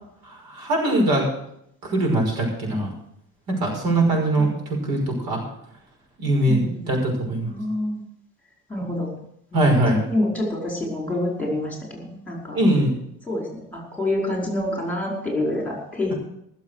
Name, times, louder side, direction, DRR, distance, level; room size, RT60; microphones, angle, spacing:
voice 1, 0.3-1.3 1.8-2.9 3.5-5.4 6.2-7.5 9.5-10.0 12.5-12.9, right 1 dB, 75° right, 1 dB, 5.9 m, -21 dB
voice 2, 6.5-6.9 7.4-8.0 8.7-9.1 9.5-9.7 10.0-12.6 13.2-16.1, left 1 dB, 5° left, -2 dB, 4.9 m, -27 dB
18.5 x 7.5 x 6.6 m, 0.76 s
cardioid pair, 135°, 37 cm